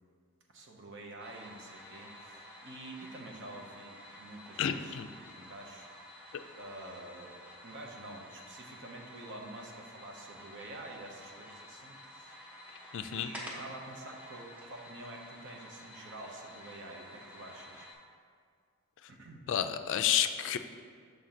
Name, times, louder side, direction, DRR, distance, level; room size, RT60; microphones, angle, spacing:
voice 1, 0.5-4.9 5.3-5.9 6.6-12.4 13.1-17.9 19.1-19.4, right 2 dB, 55° right, 1 dB, 0.9 m, -48 dB
sound 1, 1.2-17.9, equal, 5° right, 1.0 m, -50 dB
voice 2, 4.6-5.1 12.9-13.3 19.5-20.6, left 9 dB, 55° left, 9 dB, 0.3 m, -30 dB
6.5 x 3.8 x 5.8 m, 2.1 s
head